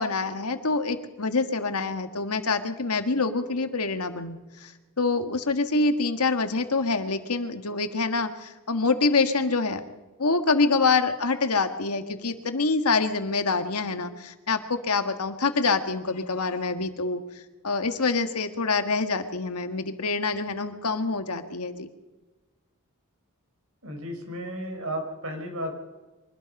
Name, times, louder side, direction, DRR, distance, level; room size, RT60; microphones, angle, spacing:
voice 1, 0.0-4.7 5.0-9.8 10.2-17.2 17.6-21.9, left 3 dB, 85° left, 8 dB, 1.7 m, -26 dB
voice 2, 23.8-25.7, equal, 70° right, 4 dB, 5.1 m, -33 dB
24.0 x 20.0 x 5.5 m, 1.2 s
head